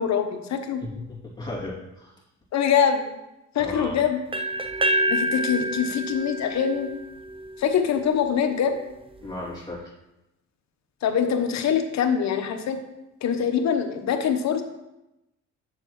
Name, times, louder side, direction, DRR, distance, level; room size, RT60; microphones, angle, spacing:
voice 1, 0.0-0.8 2.5-3.1 3.5-4.2 5.1-6.9 7.6-8.8 11.0-12.8 13.2-14.6, left 7 dB, 65° left, 7 dB, 0.9 m, -24 dB
voice 2, 0.8-2.1 3.6-4.0 9.2-9.9, left 1 dB, 15° left, -5 dB, 2.6 m, -35 dB
sound 1, 4.3-8.2, right 1 dB, 20° right, 0.6 m, -28 dB
7.6 x 6.9 x 3.1 m, 0.95 s
cardioid pair, 90°, 30 cm